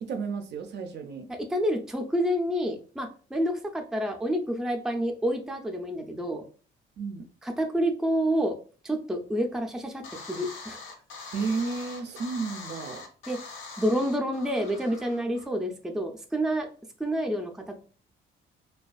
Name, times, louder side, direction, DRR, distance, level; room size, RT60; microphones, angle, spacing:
voice 1, 0.0-1.3 7.0-7.2 11.3-13.1, right 4 dB, 60° right, 6 dB, 0.4 m, -32 dB
voice 2, 1.3-6.4 7.6-8.6 8.8-10.8 13.3-13.4 13.8-16.7 17.0-17.8, equal, ahead, 4 dB, 0.4 m, -28 dB
sound 1, 10.0-15.5, left 4 dB, 80° left, 0.7 m, -43 dB
2.4 x 2.3 x 2.3 m, 0.38 s
cardioid pair, 90°, 20 cm